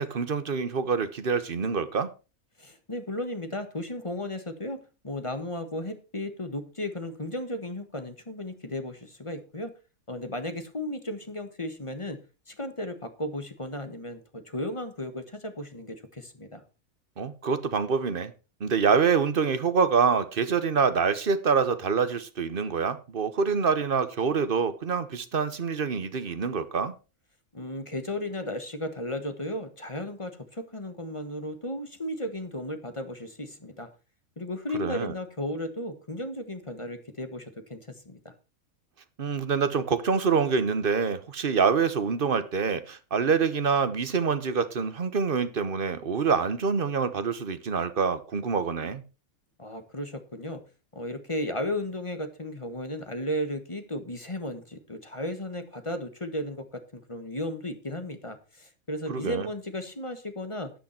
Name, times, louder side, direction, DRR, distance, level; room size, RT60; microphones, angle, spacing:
voice 1, 0.0-2.1 17.2-18.3 18.6-26.9 34.8-35.1 39.2-49.0 59.1-59.5, right 5 dB, 45° right, 1.0 m, -26 dB
voice 2, 2.6-9.7 10.1-12.2 12.5-16.6 27.5-33.9 34.4-38.3 49.6-50.6 50.9-60.7, left 1 dB, 25° left, 1.3 m, -35 dB
13.0 x 8.4 x 4.3 m
omnidirectional pair, 1.5 m